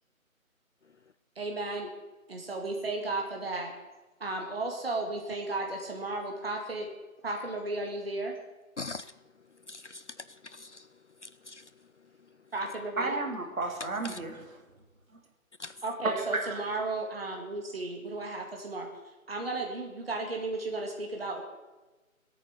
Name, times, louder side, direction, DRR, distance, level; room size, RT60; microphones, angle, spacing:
voice 1, 1.4-1.9 2.3-3.7 4.2-6.9 7.2-8.4 12.5-13.2 15.8-18.9 19.3-21.4, right 2 dB, 45° right, 2.0 m, -34 dB
voice 2, 8.8-9.1 9.7-10.9 11.2-11.7 14.0-14.2 15.6-15.8, left 3 dB, 60° left, 0.5 m, -42 dB
voice 3, 13.0-14.6 16.0-16.6, right 3 dB, 70° right, 3.1 m, -32 dB
17.0 x 8.9 x 7.0 m
figure-of-eight pair, 180°, 42 cm